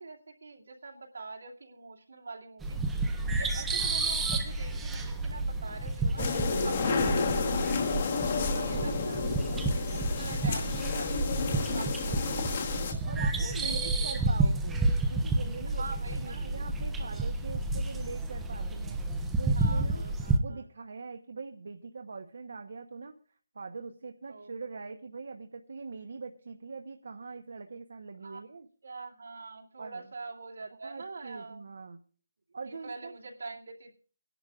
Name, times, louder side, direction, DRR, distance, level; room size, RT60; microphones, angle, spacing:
voice 1, 0.0-2.8 3.3-7.9 8.4-9.1 9.5-12.9 13.4-14.5 15.7-16.5 17.0-17.3 19.6-20.6 24.3-24.5 28.2-28.4 28.8-31.6 32.7-34.0, right 3 dB, 70° right, -1 dB, 2.5 m, -45 dB
sound 1, 2.6-20.4, right 2 dB, 5° right, 0.5 m, -30 dB
sound 2, 6.2-12.9, left 5 dB, 25° left, 1.2 m, -31 dB
voice 2, 8.1-9.3 13.0-14.8 15.1-20.1 20.4-23.2 23.5-28.7 29.8-30.1 30.8-32.0 32.5-33.1, right 4 dB, 55° right, 6 dB, 1.0 m, -43 dB
25.0 x 11.0 x 2.4 m, 0.40 s
hypercardioid pair, 180°, 0 cm